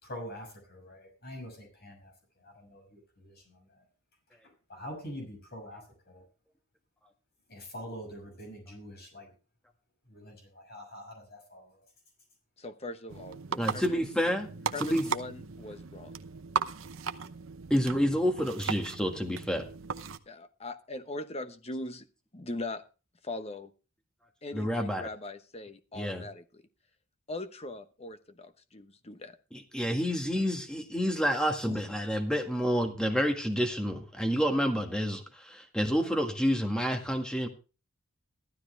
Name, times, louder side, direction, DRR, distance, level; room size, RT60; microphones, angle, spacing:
voice 1, 0.0-2.1 2.4-3.6 4.7-6.2 7.5-9.3 10.1-11.7, equal, 50° left, 2 dB, 6.1 m, -45 dB
voice 2, 12.6-14.0 14.7-16.2 20.3-22.1 22.3-22.8 23.2-23.7 24.4-26.6 27.3-29.4 31.6-31.8, left 2 dB, 30° left, 9 dB, 1.0 m, -40 dB
sound 1, 13.1-20.2, right 5 dB, 70° right, 0.8 m, -37 dB
voice 3, 13.6-14.5 14.8-15.1 17.7-19.7 24.5-25.1 25.9-26.2 29.5-37.5, equal, 5° left, 4 dB, 1.7 m, -29 dB
14.5 x 12.5 x 3.4 m, 0.33 s
head